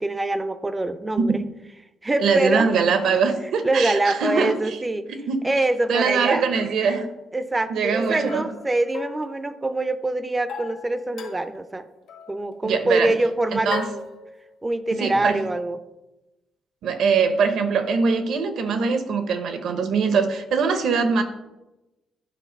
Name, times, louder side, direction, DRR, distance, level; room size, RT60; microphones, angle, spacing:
voice 1, 0.0-1.4 2.0-2.7 3.6-5.1 5.4-6.4 7.3-11.9 12.3-14.1 14.6-15.8, right 2 dB, 15° right, 11 dB, 0.4 m, -24 dB
voice 2, 2.2-4.8 5.1-5.5 5.9-7.1 7.7-8.5 12.6-13.1 13.5-13.9 15.0-15.4 16.8-21.2, right 5 dB, 65° right, 8 dB, 0.9 m, -22 dB
sound 1, 5.9-6.0 8.3-9.9 10.5-11.7 12.1-12.4 13.7-14.7, left 6 dB, 70° left, 1.1 m, -38 dB
10.0 x 3.8 x 5.2 m, 0.99 s
cardioid pair, 165°, 0 cm